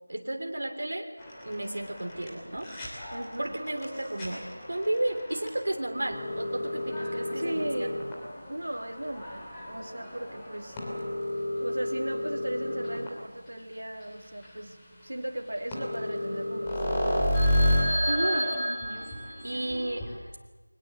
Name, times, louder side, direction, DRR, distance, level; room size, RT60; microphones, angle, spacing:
voice 1, 0.1-1.1 1.4-2.7 3.4-7.9 18.1-18.6 19.4-20.1, right 1 dB, 50° right, 3 dB, 3.1 m, -32 dB
sound 1, 1.2-13.1 13.7-13.8 14.0-14.1 14.4-14.5 15.4-15.5 15.7-20.2, equal, 5° left, 3.0 m, -31 dB
voice 2, 3.1-3.5 7.3-8.0 8.5-10.8 11.6-14.8 15.0-16.8, right 1 dB, 70° right, 3 dB, 3.1 m, -36 dB
22.5 x 21.5 x 7.8 m, 1.3 s
figure-of-eight pair, 175°, 0 cm